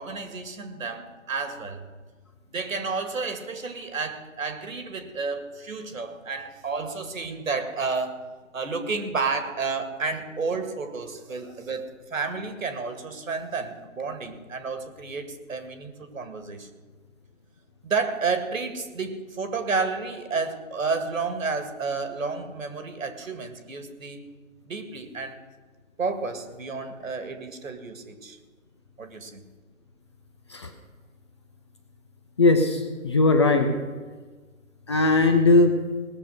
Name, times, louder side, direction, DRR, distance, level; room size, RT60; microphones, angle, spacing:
voice 1, 0.0-1.8 2.5-8.3 8.5-11.8 12.1-16.7 17.8-24.3 24.7-25.4 26.0-28.4 29.0-29.4, right 4 dB, 70° right, 8 dB, 2.1 m, -31 dB
voice 2, 32.4-33.7 34.9-35.7, left 2 dB, 20° left, 5 dB, 0.6 m, -19 dB
19.0 x 7.0 x 6.5 m, 1.4 s
figure-of-eight pair, 150°, 41 cm